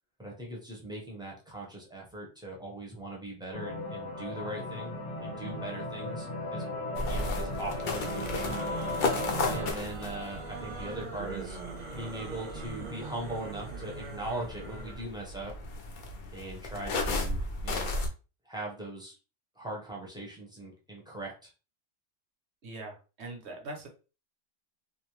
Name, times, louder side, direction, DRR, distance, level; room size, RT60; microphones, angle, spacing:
voice 1, 0.2-6.7 7.1-8.6 9.5-11.6 11.9-15.5 16.3-17.9 18.5-19.1 19.6-21.5, right 1 dB, 5° right, -3 dB, 0.6 m, -40 dB
sound 1, 3.5-9.7, left 1 dB, 40° left, 0.9 m, -36 dB
sound 2, 7.0-18.1, left 3 dB, 55° left, 0.6 m, -35 dB
sound 3, 7.7-15.0, right 4 dB, 50° right, 0.6 m, -42 dB
voice 2, 22.6-23.9, right 2 dB, 65° right, 2 dB, 1.0 m, -42 dB
2.6 x 2.0 x 3.0 m, 0.33 s
omnidirectional pair, 1.2 m